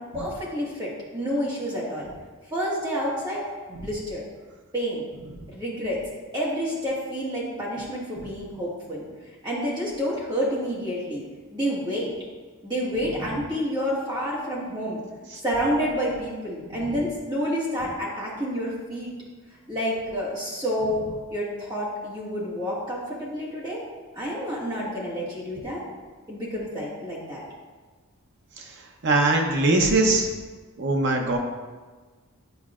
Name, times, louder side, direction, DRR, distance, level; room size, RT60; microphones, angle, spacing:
voice 1, 0.0-2.1 2.5-4.2 4.7-5.0 5.5-6.0 6.3-9.1 9.4-11.2 11.5-12.1 12.6-15.0 15.4-19.1 19.7-21.0 21.3-23.8 24.1-25.8 26.3-27.4, equal, 20° right, -7 dB, 1.7 m, -29 dB
voice 2, 29.0-30.3 30.8-31.4, right 2 dB, 55° right, 2 dB, 0.7 m, -21 dB
9.3 x 4.6 x 2.4 m, 1.4 s
head